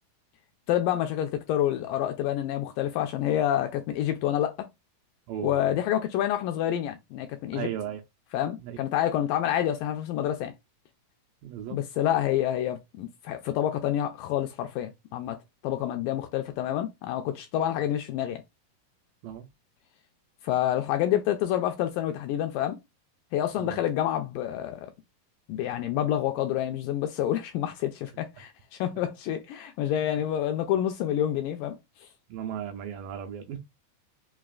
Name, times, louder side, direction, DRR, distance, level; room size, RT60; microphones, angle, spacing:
voice 1, 0.7-4.7 5.4-7.7 8.3-10.5 11.7-15.4 15.6-18.4 20.4-22.8 23.3-24.9 25.5-31.8, left 11 dB, 80° left, 2.0 m, -28 dB
voice 2, 5.3-5.8 7.5-8.0 8.6-8.8 11.4-11.8 19.2-19.5 23.6-23.8 30.1-30.2 32.3-33.6, right 9 dB, 80° right, 2.1 m, -36 dB
5.9 x 2.4 x 2.3 m
omnidirectional pair, 4.3 m